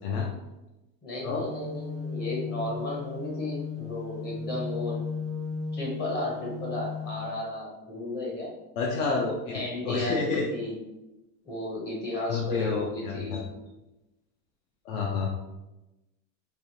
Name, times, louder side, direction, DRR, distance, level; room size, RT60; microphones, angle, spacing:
voice 1, 1.0-5.1 5.7-8.5 9.5-10.8 11.4-13.4, left 2 dB, 20° left, -4 dB, 0.7 m, -34 dB
sound 1, 1.3-7.2, left 4 dB, 35° right, 0.4 m, -35 dB
voice 2, 8.8-10.5 12.3-13.4 14.9-15.3, left 4 dB, 60° left, -1 dB, 0.6 m, -29 dB
3.4 x 2.7 x 2.7 m, 1.0 s
supercardioid pair, 140°, 50 cm